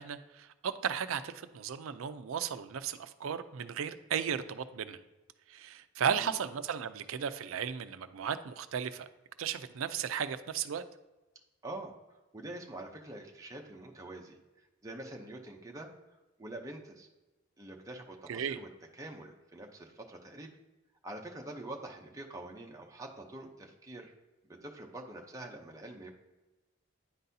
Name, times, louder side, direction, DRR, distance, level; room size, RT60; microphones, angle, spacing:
voice 1, 0.0-5.0 5.5-9.1 9.4-10.8 18.3-18.6, right 7 dB, 70° right, 11 dB, 0.4 m, -35 dB
voice 2, 11.6-11.9 12.3-17.1 17.6-18.7 19.0-20.5 21.0-24.1 24.6-26.1, right 1 dB, 15° right, 0 dB, 0.6 m, -45 dB
9.9 x 4.0 x 2.7 m, 1.1 s
head